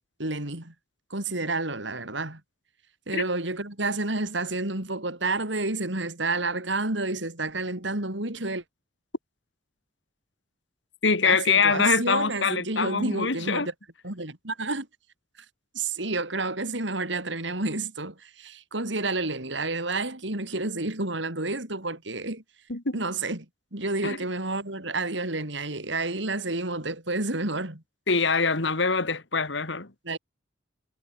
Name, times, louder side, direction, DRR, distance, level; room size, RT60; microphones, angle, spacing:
voice 1, 0.2-0.7 1.1-2.4 3.1-8.6 11.2-13.7 14.0-14.9 15.7-22.4 22.9-23.5 23.7-27.8 30.0-30.2, right 2 dB, 65° right, 4.1 m, -30 dB
voice 2, 11.0-13.7 22.7-23.0 24.0-24.2 28.1-29.9, left 5 dB, 65° left, 2.1 m, -24 dB
head